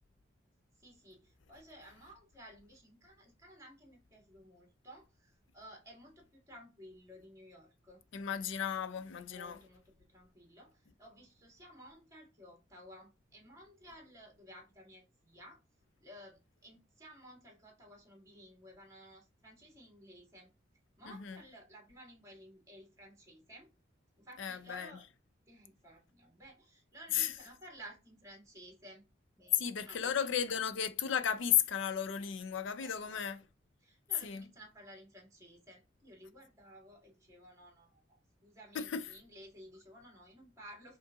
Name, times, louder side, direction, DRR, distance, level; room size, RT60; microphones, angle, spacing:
voice 1, 0.8-8.0 9.2-15.6 16.0-20.5 21.0-23.7 24.2-25.1 25.5-29.0 29.4-30.2 32.8-33.2 33.8-38.0 38.4-41.0, equal, 15° right, 1.7 m, -55 dB
voice 2, 8.1-9.6 21.1-21.4 24.4-24.9 27.1-27.3 29.5-33.4 34.2-34.4 38.8-39.0, left 8 dB, 75° left, 0.5 m, -34 dB
5.3 x 2.6 x 3.6 m
head